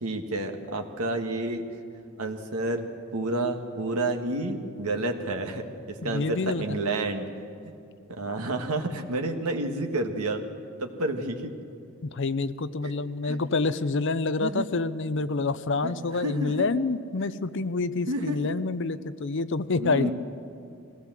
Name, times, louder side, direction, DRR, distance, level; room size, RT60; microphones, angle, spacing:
voice 1, 0.0-1.6 2.2-2.8 3.1-7.3 7.6-7.7 8.1-10.4 10.8-11.5 13.2-13.4 14.4-14.7 15.8-16.7 18.1-18.4 19.7-20.1, right 2 dB, 80° right, 4 dB, 1.6 m, -30 dB
voice 2, 6.0-6.8 12.1-20.1, left 3 dB, 55° left, 14 dB, 0.6 m, -27 dB
21.0 x 16.5 x 7.5 m, 2.6 s
head